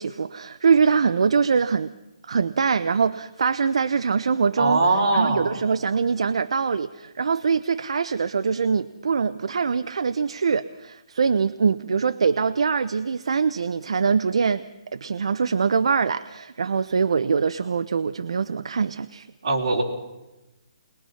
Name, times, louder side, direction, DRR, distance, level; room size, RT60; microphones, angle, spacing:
voice 1, 0.0-1.9 2.3-4.8 5.1-14.6 14.9-19.3, right 5 dB, 70° right, 12 dB, 0.6 m, -23 dB
voice 2, 4.6-5.5 19.4-19.8, right 2 dB, 45° right, -2 dB, 4.6 m, -21 dB
21.5 x 21.0 x 5.7 m, 1.0 s
hypercardioid pair, 180°, 3 cm